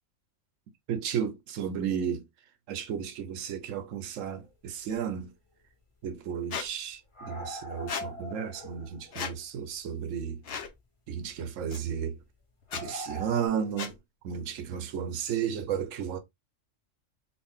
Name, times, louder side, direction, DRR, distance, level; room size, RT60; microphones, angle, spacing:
voice 1, 0.9-2.2 2.7-5.3 6.0-10.4 11.1-12.2 12.7-13.9 14.2-16.2, right 8 dB, 80° right, 1.1 m, -33 dB
sound 1, 4.4-4.5 5.0-5.1 5.3-5.4 7.1-9.1 9.7-9.8 11.2-11.5 12.7-13.5, equal, 25° left, 0.9 m, -41 dB
Squeak, 6.5-6.7 7.9-8.1 9.1-9.3 10.4-10.7 11.7-11.8 12.6-12.8 13.8-13.9, left 6 dB, 55° left, 0.8 m, -35 dB
4.0 x 2.2 x 3.5 m
omnidirectional pair, 1.3 m